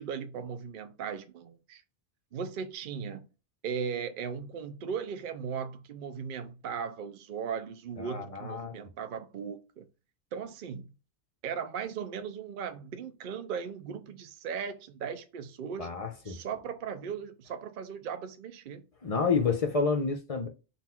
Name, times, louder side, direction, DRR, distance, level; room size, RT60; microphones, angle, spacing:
voice 1, 0.0-1.8 2.3-3.3 3.6-9.9 10.3-10.9 11.4-15.9 16.3-18.8, right 7 dB, 60° right, 0.6 m, -37 dB
voice 2, 8.0-8.7 15.8-16.4 19.0-20.5, left 4 dB, 40° left, 0.6 m, -29 dB
3.9 x 2.4 x 4.3 m
omnidirectional pair, 1.2 m